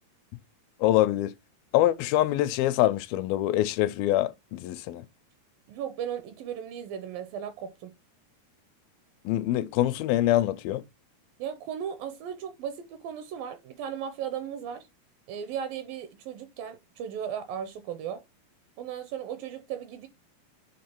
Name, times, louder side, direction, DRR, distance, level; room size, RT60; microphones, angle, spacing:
voice 1, 0.8-1.3 1.7-5.0 9.3-10.8, left 14 dB, 80° left, 2.3 m, -24 dB
voice 2, 5.7-7.9 11.4-14.9 15.3-18.2 18.8-20.1, right 8 dB, 80° right, 2.3 m, -36 dB
8.7 x 3.5 x 4.4 m
omnidirectional pair, 4.4 m